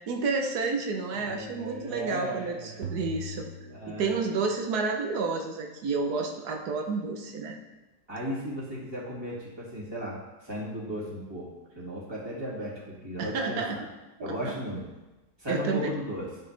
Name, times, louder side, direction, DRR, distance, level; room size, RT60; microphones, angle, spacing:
voice 1, 0.1-3.4 3.9-7.6 13.2-13.8 14.2-14.5 15.5-15.9, right 4 dB, 80° right, 3 dB, 1.4 m, -30 dB
voice 2, 1.2-2.8 3.7-4.2 8.1-13.8 14.2-14.8 15.4-16.3, equal, 15° right, -7 dB, 2.3 m, -36 dB
sound 1, 2.8-4.6, left 1 dB, 60° right, 1.0 m, -39 dB
10.0 x 5.7 x 3.3 m, 1.1 s
omnidirectional pair, 1.6 m